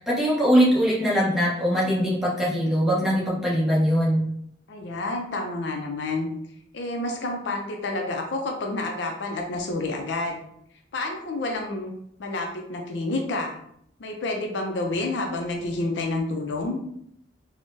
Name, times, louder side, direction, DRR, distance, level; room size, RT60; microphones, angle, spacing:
voice 1, 0.0-4.2, equal, ahead, -7 dB, 0.8 m, -22 dB
voice 2, 4.7-6.3 6.7-10.4 10.9-11.9 12.2-13.6 14.0-16.8, left 2 dB, 70° left, 2 dB, 0.5 m, -29 dB
3.6 x 2.1 x 2.6 m, 0.70 s
head